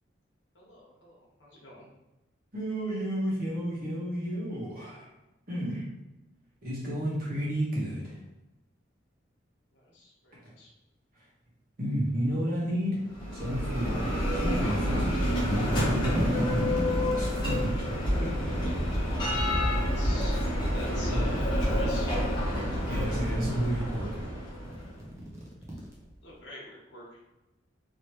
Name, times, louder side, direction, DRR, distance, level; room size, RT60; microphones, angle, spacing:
voice 1, 0.5-1.9 9.7-10.7 18.4-20.4 20.7-22.1 26.2-27.2, left 1 dB, 65° left, -4 dB, 1.1 m, -46 dB
voice 2, 2.5-5.1 5.5-5.9 6.6-8.2 11.2-11.3 11.8-13.0 13.3-17.9 18.2-18.9 21.1-21.3 22.9-24.2, equal, 50° right, -5 dB, 1.2 m, -32 dB
Bell, 13.1-24.9, equal, 25° left, 0.9 m, -28 dB
sound 1, 16.0-17.7 18.5-20.1 21.0-22.1 22.5-24.0 24.6-26.4, equal, 15° right, 0.6 m, -39 dB
3.1 x 2.9 x 2.9 m, 1.0 s
head